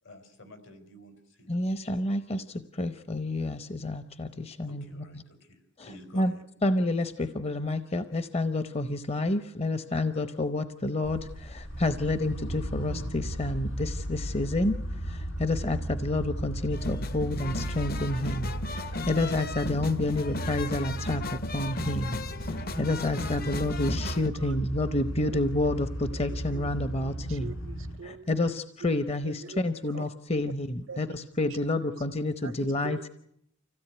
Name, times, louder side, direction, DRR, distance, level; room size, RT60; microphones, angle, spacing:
voice 1, 0.0-1.7 4.6-6.3, left 1 dB, 70° left, 4.4 m, -51 dB
voice 2, 1.5-5.0 5.8-5.9 6.1-6.3 6.6-14.8 15.0-21.2 21.5-22.2 22.8-27.5 28.0-33.0, left 2 dB, 30° left, 0.9 m, -29 dB
sound 1, 11.0-28.0, right 1 dB, 90° left, 6.1 m, -36 dB
sound 2, 16.7-24.3, left 2 dB, 50° left, 1.1 m, -36 dB
voice 3, 26.1-26.7 26.9-28.3 28.8-28.9 29.2-30.0 30.9-31.1 32.4-33.1, right 4 dB, 90° right, 0.9 m, -44 dB
26.0 x 16.5 x 9.2 m
head